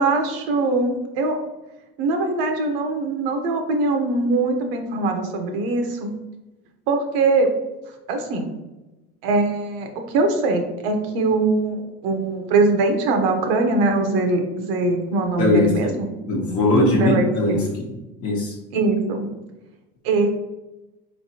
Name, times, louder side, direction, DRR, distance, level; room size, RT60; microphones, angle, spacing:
voice 1, 0.0-1.4 2.0-6.1 6.9-7.5 8.1-8.5 9.2-16.1 17.0-17.6 18.7-19.3 20.0-20.3, right 3 dB, 85° right, 5 dB, 0.9 m, -22 dB
voice 2, 15.4-15.9 16.3-17.9 18.2-18.6, left 1 dB, 55° left, -2 dB, 0.9 m, -20 dB
4.1 x 3.3 x 2.8 m, 1.1 s
supercardioid pair, 110°, 29 cm